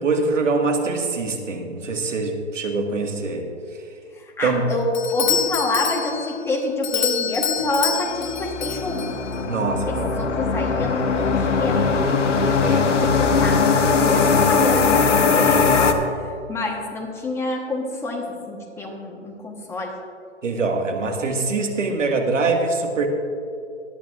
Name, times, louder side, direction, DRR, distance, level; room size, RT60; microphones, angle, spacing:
voice 1, 0.0-3.8 4.4-4.6 9.5-10.3 12.4-12.8 20.4-23.1, right 3 dB, 85° right, 3 dB, 1.9 m, -24 dB
voice 2, 4.1-9.2 9.9-12.1 12.6-20.0, left 2 dB, 5° left, 0 dB, 1.2 m, -27 dB
Doorbell, 4.9-9.4, left 8 dB, 40° left, 0.7 m, -27 dB
sound 1, 8.1-15.9, left 5 dB, 80° left, 1.2 m, -20 dB
18.0 x 12.0 x 2.5 m, 2.5 s
hypercardioid pair, 140°, 36 cm